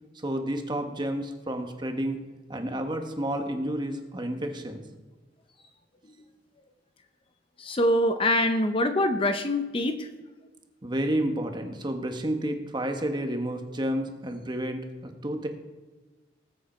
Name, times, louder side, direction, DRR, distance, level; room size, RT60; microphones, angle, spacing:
voice 1, 0.2-2.2 2.5-4.8 10.8-15.5, right 1 dB, 25° right, 5 dB, 1.3 m, -30 dB
voice 2, 7.6-10.1, left 1 dB, 30° left, 8 dB, 0.7 m, -24 dB
20.0 x 7.8 x 4.4 m, 1.2 s
head